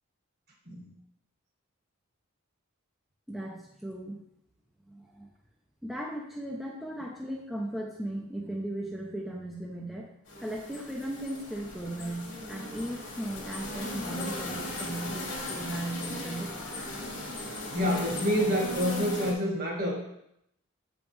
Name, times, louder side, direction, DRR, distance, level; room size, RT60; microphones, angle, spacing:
voice 1, 3.3-4.2 4.9-5.3 5.8-10.1 10.4-16.8, right 1 dB, ahead, -3 dB, 0.5 m, -37 dB
sound 1, 10.3-19.3, left 1 dB, 60° left, 1.4 m, -38 dB
voice 2, 17.7-20.0, equal, 45° right, -1 dB, 1.5 m, -28 dB
7.5 x 5.2 x 3.1 m, 0.78 s
head